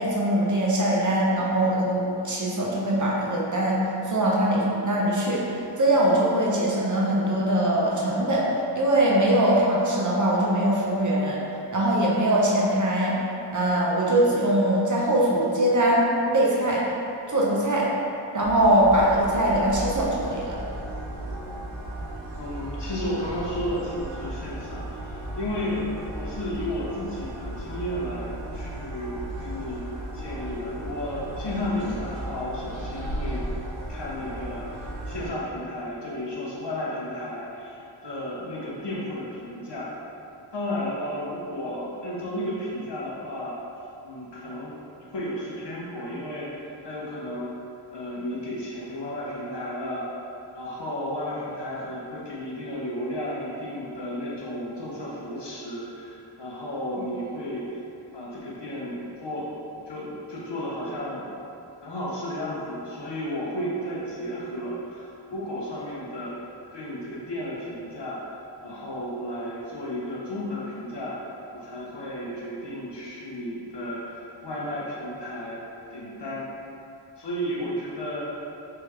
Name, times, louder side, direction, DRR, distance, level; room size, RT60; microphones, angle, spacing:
voice 1, 0.0-11.4 11.7-13.2 13.5-16.1 16.3-16.8 17.3-17.9 18.3-20.6, right 1 dB, 40° right, -5 dB, 0.7 m, -22 dB
sound 1, 18.4-35.3, right 1 dB, 85° right, 0.9 m, -35 dB
voice 2, 22.4-25.8 26.1-29.9 30.1-33.5 33.9-39.9 40.5-43.6 44.0-44.7 45.0-47.5 47.9-50.1 50.5-57.8 58.1-59.5 59.9-61.3 61.8-68.3 68.6-71.2 71.5-75.6 75.9-76.5 77.2-78.2, left 1 dB, 65° left, -6 dB, 0.9 m, -33 dB
3.4 x 3.3 x 3.2 m, 2.7 s
wide cardioid pair, 70°, 45 cm